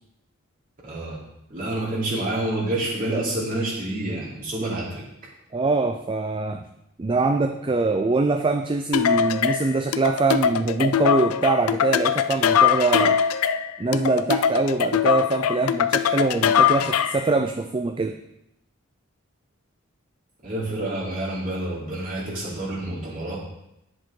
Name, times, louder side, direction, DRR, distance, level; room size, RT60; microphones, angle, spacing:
voice 1, 0.8-1.2 1.5-5.0 20.4-23.4, right 1 dB, 40° right, -6 dB, 3.3 m, -28 dB
voice 2, 5.5-6.6 7.0-13.2 13.8-18.2, right 3 dB, 25° right, 6 dB, 0.4 m, -23 dB
sound 1, 8.9-17.3, left 8 dB, 90° left, 0.4 m, -22 dB
10.5 x 7.8 x 3.8 m, 0.86 s
head